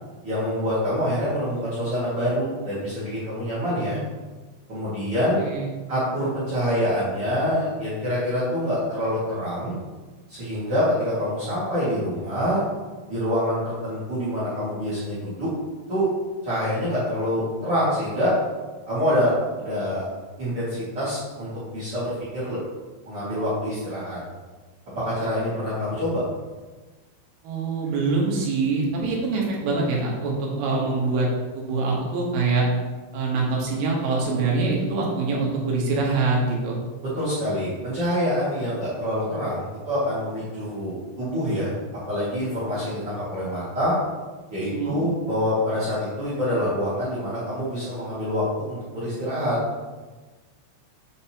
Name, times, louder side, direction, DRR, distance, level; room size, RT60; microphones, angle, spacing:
voice 1, 0.2-4.0 4.7-5.4 5.9-9.8 10.3-12.6 13.1-15.5 15.9-16.1 16.4-18.3 18.9-20.1 20.4-22.6 23.1-24.2 24.9-26.2 37.1-41.7 42.1-44.0 44.5-49.6, equal, 45° right, -11 dB, 1.9 m, -26 dB
voice 2, 5.4-5.7 27.4-31.3 31.5-32.7 33.1-36.8 44.7-45.0, right 3 dB, 70° right, -2 dB, 2.9 m, -24 dB
7.8 x 5.3 x 2.9 m, 1.3 s
omnidirectional pair, 5.3 m